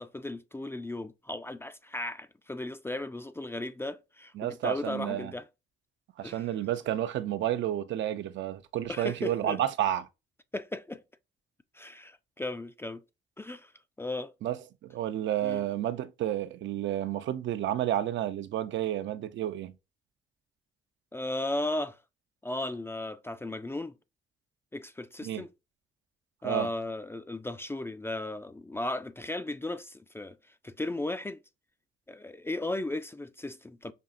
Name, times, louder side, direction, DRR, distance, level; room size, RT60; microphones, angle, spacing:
voice 1, 0.0-5.5 6.2-6.5 8.9-9.6 10.5-11.0 11.7-13.0 13.4-13.7 14.0-14.3 15.4-15.6 21.1-22.0 22.4-23.9 24.7-25.5 26.4-31.4 32.1-33.9, left 2 dB, 10° left, 0.3 m, -36 dB
voice 2, 4.4-5.3 6.2-10.1 14.4-19.7 25.2-25.4 26.4-26.7, right 12 dB, 70° right, 0.5 m, -31 dB
5.2 x 2.7 x 2.5 m
cardioid pair, 90°, 20 cm